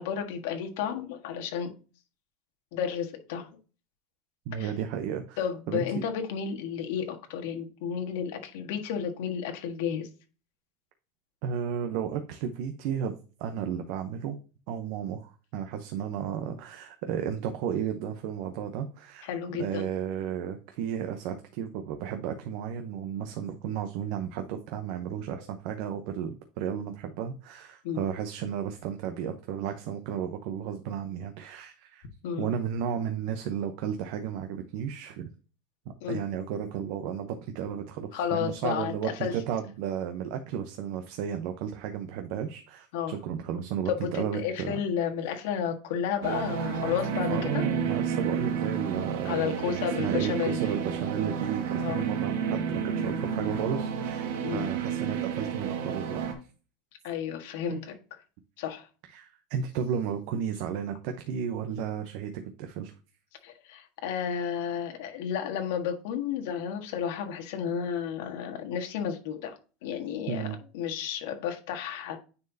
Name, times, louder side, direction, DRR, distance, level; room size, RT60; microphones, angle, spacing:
voice 1, 0.0-1.7 2.7-3.6 4.5-4.7 5.4-10.1 19.2-19.9 27.8-28.0 32.2-32.5 36.0-36.2 38.1-39.3 42.9-43.2 43.9-47.6 49.2-50.6 51.8-52.1 54.3-54.7 57.0-57.9 58.6-58.9 63.4-69.5 69.8-70.5 70.7-72.2, left 8 dB, 65° left, 1.6 m, -32 dB
voice 2, 4.5-5.4 5.7-6.0 11.4-14.4 14.7-19.3 19.6-32.1 32.4-35.3 36.1-44.8 47.3-56.2 57.7-57.8 59.1-62.9 70.3-70.6, right 8 dB, 50° right, 0.8 m, -33 dB
sound 1, 46.2-56.3, right 7 dB, 80° right, 1.8 m, -31 dB
9.5 x 4.5 x 2.7 m
supercardioid pair, 175°, 0 cm